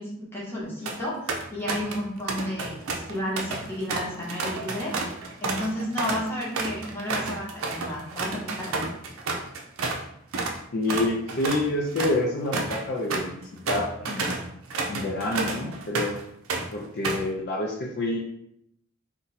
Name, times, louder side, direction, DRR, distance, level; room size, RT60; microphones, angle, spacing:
voice 1, 0.0-4.9 5.4-8.9, equal, 10° left, -6 dB, 0.8 m, -32 dB
sound 1, 0.6-1.0 1.3-2.0 2.3-10.0 10.3-10.6 10.9-16.2 16.5-17.3, right 3 dB, 90° right, 0.5 m, -31 dB
voice 2, 10.7-14.4 14.9-16.2 16.7-18.2, left 2 dB, 50° left, -1 dB, 0.4 m, -28 dB
2.6 x 2.2 x 3.9 m, 0.73 s
head